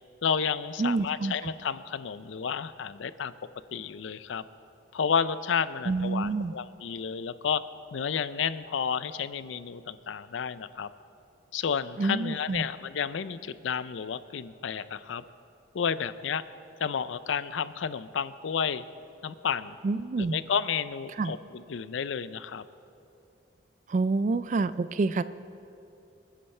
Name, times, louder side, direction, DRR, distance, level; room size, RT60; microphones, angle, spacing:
voice 1, 0.2-3.3 3.7-4.4 4.9-7.6 7.9-10.9 11.5-15.2 15.7-16.4 16.8-18.9 19.2-19.8 20.2-22.6, left 7 dB, 80° left, 15 dB, 0.4 m, -31 dB
voice 2, 0.8-1.5 5.9-6.5 12.0-12.6 19.8-20.4 21.2-21.3 23.9-25.2, right 3 dB, 40° right, 14 dB, 0.3 m, -27 dB
25.0 x 9.9 x 3.3 m, 2.7 s
head